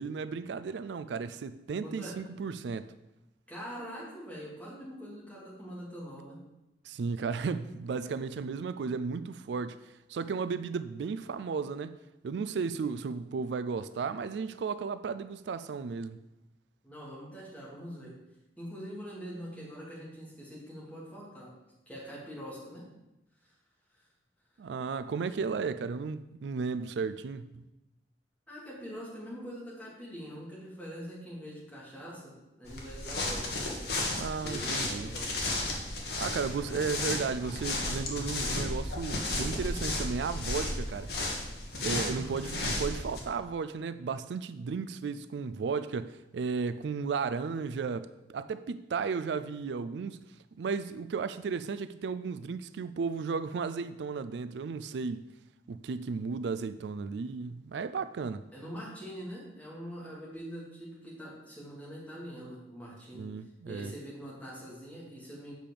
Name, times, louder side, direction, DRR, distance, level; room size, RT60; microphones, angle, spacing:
voice 1, 0.0-2.9 6.8-11.9 12.2-16.2 24.6-27.6 34.2-35.1 36.2-41.1 41.8-50.2 50.6-55.2 55.7-58.4 63.2-63.9, right 5 dB, 75° right, 0.4 m, -34 dB
voice 2, 1.8-2.2 3.5-6.4 16.8-18.1 18.6-21.5 21.9-22.8 23.4-23.5 23.9-24.0 28.5-33.5 34.4-35.3 42.0-42.6 58.5-63.3 63.6-65.6, equal, 10° left, 2.9 m, -44 dB
sound 1, 32.7-43.2, left 2 dB, 65° left, 1.7 m, -33 dB
7.5 x 5.1 x 6.8 m
head